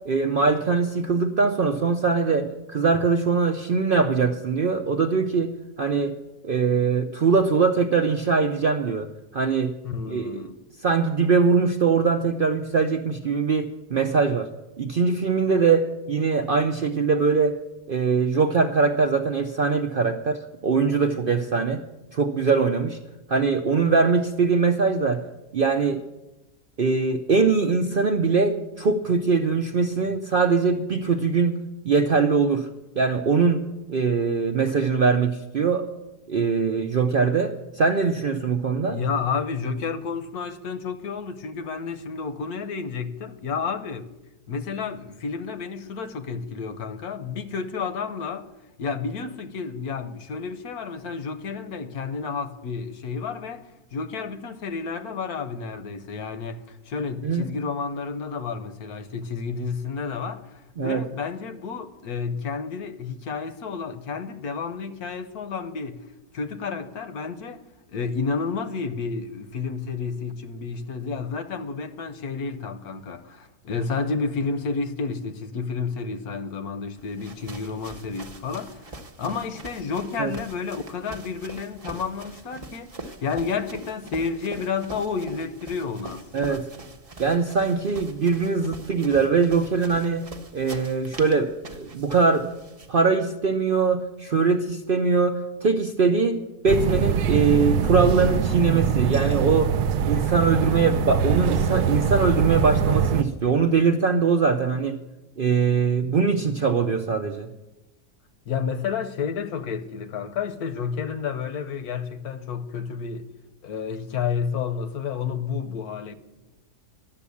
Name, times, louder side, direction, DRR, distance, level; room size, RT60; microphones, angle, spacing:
voice 1, 0.1-6.1 6.4-9.1 9.3-9.7 10.1-10.5 10.8-14.5 14.8-17.6 17.9-21.8 22.1-23.0 23.3-25.2 25.5-26.0 26.8-31.6 31.8-32.7 33.0-33.6 33.9-35.8 36.3-39.0 57.2-57.5 60.8-61.0 80.2-80.3 86.3-86.6 87.2-90.2 90.5-92.5 92.9-99.7 100.0-105.0 105.4-107.5, right 5 dB, 60° right, 0.6 m, -22 dB
voice 2, 9.8-10.6 38.9-44.1 44.5-48.5 48.8-53.6 53.9-66.0 66.3-67.6 67.9-86.6 108.5-113.3 113.6-116.1, left 5 dB, 75° left, 1.3 m, -31 dB
sound 1, 77.0-93.0, right 2 dB, 30° right, 0.8 m, -42 dB
sound 2, 96.7-103.2, right 7 dB, 85° right, 1.1 m, -23 dB
11.5 x 7.3 x 8.4 m
omnidirectional pair, 1.6 m